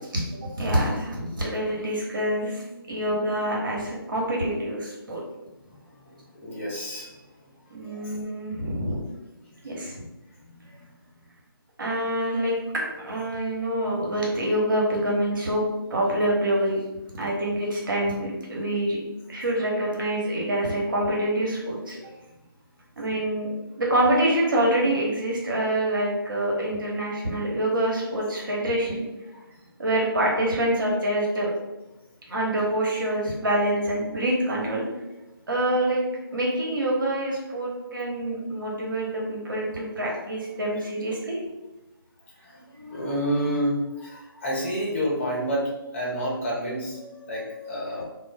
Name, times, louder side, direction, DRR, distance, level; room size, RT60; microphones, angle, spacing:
voice 1, 0.1-5.2 7.7-9.0 9.6-10.0 11.8-15.6 15.9-16.8 17.1-19.0 19.3-22.0 23.0-29.0 29.8-31.5 32.3-34.8 35.5-36.0 36.3-41.4, right 1 dB, 60° right, -3 dB, 1.0 m, -26 dB
voice 2, 5.7-7.2 7.8-8.1 9.4-9.7 10.5-10.9 29.3-29.4 40.7-40.8 42.3-48.0, equal, 35° left, -5 dB, 0.9 m, -30 dB
2.4 x 2.0 x 3.2 m, 1.0 s
figure-of-eight pair, 150°, 12 cm